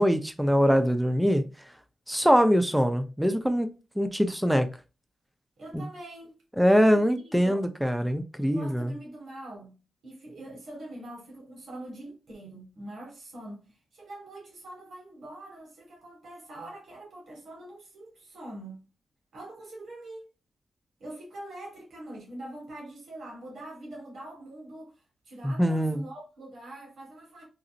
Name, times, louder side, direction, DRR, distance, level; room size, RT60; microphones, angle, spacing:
voice 1, 0.0-1.4 2.1-3.7 4.0-4.7 5.7-5.8 6.6-8.9 25.4-26.0, equal, 5° right, 0.4 m, -23 dB
voice 2, 5.6-6.4 6.9-7.7 8.4-18.8 19.3-20.3 21.0-27.4, right 1 dB, 75° right, 1.5 m, -44 dB
3.8 x 2.0 x 2.5 m
cardioid pair, 95°, 0 cm